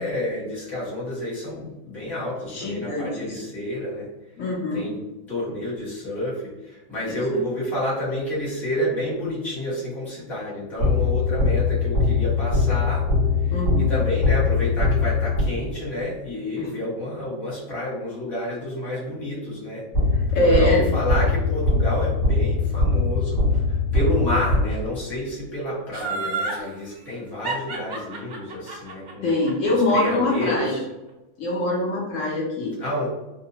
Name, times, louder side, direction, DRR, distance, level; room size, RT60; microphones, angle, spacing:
voice 1, 0.0-4.1 4.7-5.0 5.3-13.0 13.4-19.9 20.4-29.3 29.7-30.8 32.8-33.1, left 1 dB, ahead, -8 dB, 0.6 m, -29 dB
voice 2, 2.5-3.4 4.4-4.9 7.1-7.2 13.5-13.9 16.6-16.7 20.3-20.8 29.2-30.8 31.4-32.7, left 1 dB, 65° left, -3 dB, 1.0 m, -23 dB
sound 1, 10.8-15.9 19.9-25.2, left 3 dB, 40° left, 1.2 m, -22 dB
Laughter, 25.9-26.6 27.4-30.5 30.9-31.0, right 4 dB, 85° right, 0.4 m, -30 dB
2.8 x 2.0 x 2.7 m, 1.0 s
omnidirectional pair, 1.5 m